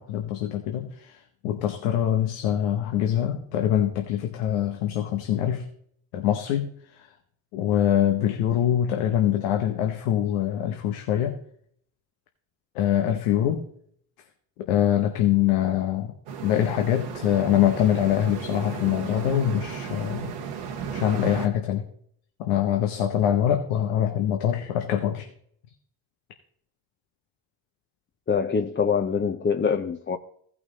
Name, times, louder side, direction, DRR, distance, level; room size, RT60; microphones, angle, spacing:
voice 1, 0.0-5.7 6.1-7.1 7.5-11.4 12.7-13.7 14.6-16.1 16.4-20.3 20.9-21.9 22.4-25.3, left 11 dB, 90° left, 1.0 m, -24 dB
sound 1, 16.3-21.5, right 7 dB, 85° right, 1.5 m, -35 dB
voice 2, 28.3-30.2, left 6 dB, 25° left, 0.7 m, -24 dB
15.0 x 5.9 x 4.0 m
supercardioid pair, 60°, 50 cm